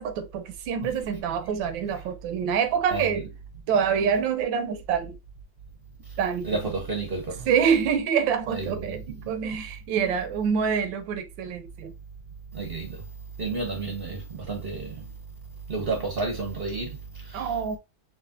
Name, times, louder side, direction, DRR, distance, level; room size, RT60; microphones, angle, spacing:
voice 1, 0.0-3.3 3.7-5.2 6.2-6.6 7.4-11.9 17.3-17.8, right 7 dB, 75° right, 1.3 m, -26 dB
voice 2, 6.4-7.5 8.5-9.0 12.5-13.0 13.4-15.0 15.7-17.0 17.2-17.5, right 3 dB, 50° right, 0.7 m, -31 dB
5.3 x 3.2 x 2.4 m
omnidirectional pair, 2.3 m